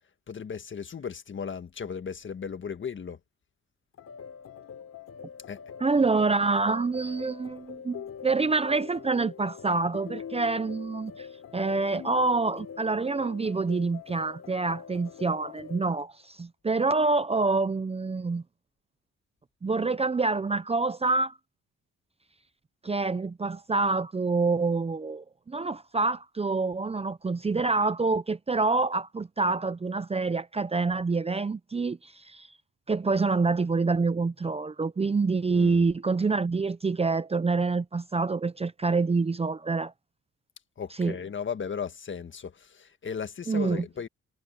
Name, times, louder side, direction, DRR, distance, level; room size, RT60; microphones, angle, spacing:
voice 1, 0.3-3.2 5.5-5.6 35.5-35.8 40.8-44.1, left 6 dB, 40° left, 1.6 m, -36 dB
sound 1, 4.0-15.9, left 7 dB, 55° left, 4.4 m, -44 dB
voice 2, 5.8-11.3 11.5-18.4 19.6-21.4 22.8-32.5 32.9-39.9 41.0-41.2 43.5-43.8, right 3 dB, 20° right, 0.7 m, -27 dB
cardioid pair, 90°, 30 cm